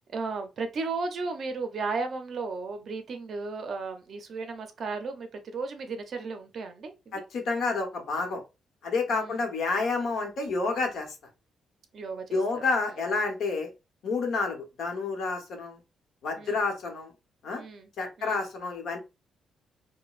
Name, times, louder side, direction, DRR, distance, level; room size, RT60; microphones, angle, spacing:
voice 1, 0.1-7.2 9.1-9.4 11.9-12.6 16.4-16.6 17.6-17.9 18.2-18.4, right 4 dB, 45° right, 0.5 m, -35 dB
voice 2, 7.1-8.4 8.8-11.1 12.3-13.7 14.0-15.8 16.2-17.1 17.4-17.6 18.0-19.0, left 3 dB, 60° left, 1.0 m, -29 dB
5.0 x 2.1 x 2.4 m
cardioid pair, 175°, 0 cm